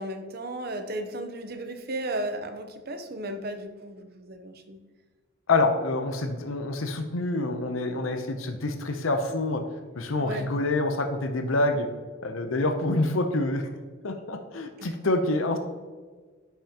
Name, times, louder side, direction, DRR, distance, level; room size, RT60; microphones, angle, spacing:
voice 1, 0.0-4.8 10.2-10.5 14.8-14.9, right 1 dB, 50° right, 7 dB, 0.8 m, -35 dB
voice 2, 5.5-9.6 10.0-11.9 12.2-13.7 14.0-15.6, left 2 dB, 80° left, 6 dB, 0.7 m, -27 dB
10.5 x 5.6 x 2.9 m, 1.4 s
head